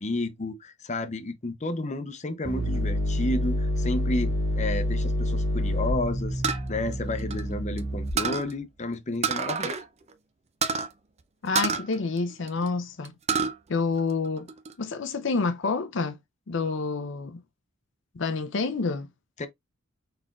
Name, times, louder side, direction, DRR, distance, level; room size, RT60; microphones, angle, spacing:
voice 1, 0.0-9.8 19.4-19.5, left 2 dB, 35° left, 0.7 m, -31 dB
sound 1, 2.5-8.4, left 1 dB, 70° right, 2.3 m, -28 dB
sound 2, 6.4-7.8 8.2-8.5 9.2-9.8 10.1-10.2 10.6-10.9 11.5-12.7 13.0-13.5 14.0-14.7, right 5 dB, 35° right, 0.5 m, -28 dB
voice 2, 11.4-13.1 13.7-14.5 14.8-16.2 16.5-17.4 18.2-19.1, left 4 dB, 65° left, 0.6 m, -28 dB
4.4 x 4.1 x 2.4 m
head